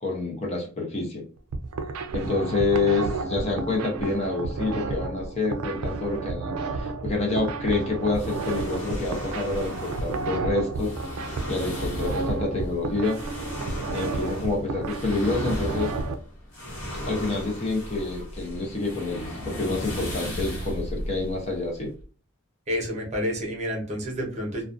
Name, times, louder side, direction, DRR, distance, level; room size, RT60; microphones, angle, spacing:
voice 1, 0.0-1.2 2.1-10.9 11.5-13.2 13.9-15.9 17.1-21.9, left 3 dB, 30° left, 0 dB, 0.5 m, -28 dB
sound 1, 1.4-16.1, right 3 dB, 80° right, 0.3 m, -31 dB
sound 2, 8.1-22.0, equal, 65° left, 0.9 m, -36 dB
voice 2, 22.7-24.6, equal, 30° right, 0 dB, 0.7 m, -29 dB
2.4 x 2.1 x 2.4 m, 0.39 s
head